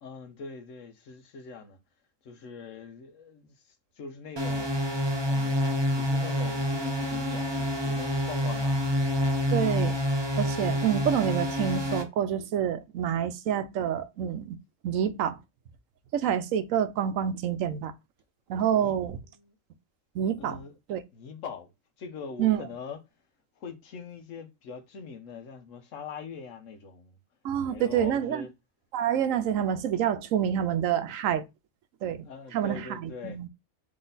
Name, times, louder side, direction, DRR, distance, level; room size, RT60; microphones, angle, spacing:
voice 1, 0.0-1.8 2.2-3.5 4.0-4.7 5.3-5.6 5.9-8.8 18.7-19.5 20.4-20.7 21.1-21.7 22.0-23.0 23.6-27.2 27.6-28.5 32.2-33.4, left 5 dB, 75° left, 1.2 m, -42 dB
sound 1, 4.4-12.0, left 1 dB, 25° right, 0.7 m, -27 dB
voice 2, 9.5-10.0 10.4-14.6 14.8-15.4 16.1-17.9 18.5-19.2 20.1-20.6 20.9-21.0 22.4-22.6 27.4-28.5 28.9-31.4 32.0-32.2 32.5-33.5, right 9 dB, 80° right, 1.0 m, -27 dB
4.0 x 3.3 x 3.8 m
omnidirectional pair, 1.4 m